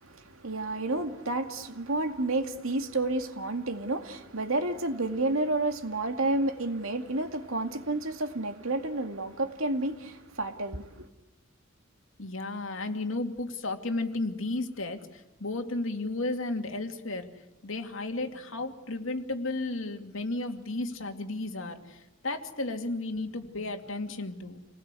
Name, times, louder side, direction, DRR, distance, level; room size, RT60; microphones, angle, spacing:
voice 1, 0.0-11.1, right 2 dB, 85° right, 2.3 m, -30 dB
voice 2, 12.2-17.3 17.6-24.6, left 2 dB, 70° left, 2.5 m, -33 dB
28.5 x 19.5 x 8.4 m
head